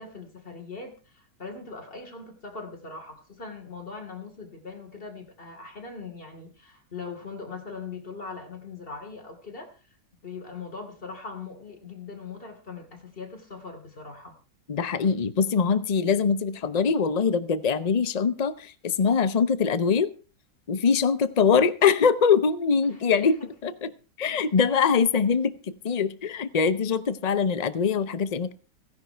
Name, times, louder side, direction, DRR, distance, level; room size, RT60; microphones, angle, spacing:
voice 1, 0.0-9.8 10.2-14.4 22.8-23.5, left 4 dB, 30° left, 3 dB, 2.9 m, -41 dB
voice 2, 14.7-20.1 20.7-23.9 24.2-25.6 25.8-28.5, left 6 dB, 90° left, 12 dB, 0.3 m, -23 dB
16.0 x 10.5 x 4.5 m, 0.35 s
omnidirectional pair, 1.9 m